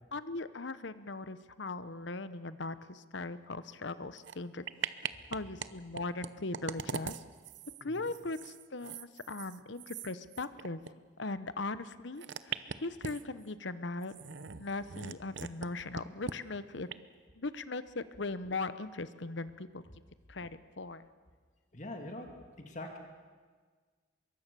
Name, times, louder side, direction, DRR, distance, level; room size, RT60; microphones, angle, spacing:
voice 1, 0.1-4.6 5.3-7.1 7.8-10.8 11.2-12.5 12.8-14.1 14.6-16.9 17.4-19.8 20.3-21.1, left 3 dB, 70° left, 14 dB, 1.0 m, -39 dB
sound 1, 4.2-4.4 4.7-5.7 5.9-10.9 11.2-11.3 12.2-13.5 14.0-15.7 15.9-16.4 16.9-17.0, right 6 dB, 65° right, 0.8 m, -41 dB
voice 2, 7.8-8.2 21.7-22.3 22.6-23.0, left 1 dB, 40° left, 3 dB, 2.3 m, -43 dB
25.0 x 22.5 x 7.0 m, 1.5 s
head